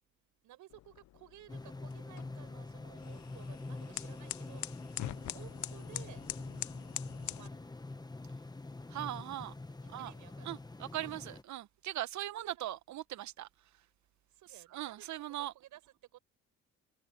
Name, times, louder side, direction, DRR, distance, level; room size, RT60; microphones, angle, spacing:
voice 1, 0.4-4.7 5.3-6.2 7.3-7.9 9.8-10.6 11.0-11.1 12.3-12.7 14.3-15.8 16.1-16.2, right 14 dB, 85° right, 7.7 m, -56 dB
sound 1, 0.7-7.5, left 15 dB, 70° left, 0.6 m, -45 dB
sound 2, 1.5-11.4, left 2 dB, 15° left, 1.2 m, -45 dB
voice 2, 8.9-9.5 9.9-10.1 10.4-13.5 14.5-15.5, right 13 dB, 70° right, 0.9 m, -40 dB
cardioid pair, 90°, 30 cm